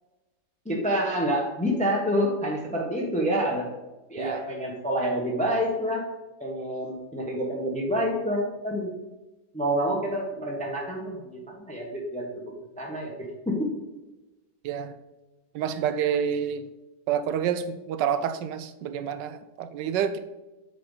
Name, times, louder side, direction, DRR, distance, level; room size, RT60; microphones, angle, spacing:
voice 1, 0.6-3.7 4.1-6.0 6.4-8.9 9.5-12.3 12.8-13.1 13.4-13.7, equal, 5° left, -1 dB, 1.0 m, -27 dB
voice 2, 15.5-16.7 17.1-20.2, right 8 dB, 90° right, 10 dB, 1.3 m, -28 dB
7.3 x 4.8 x 3.9 m, 1.1 s
omnidirectional pair, 1.9 m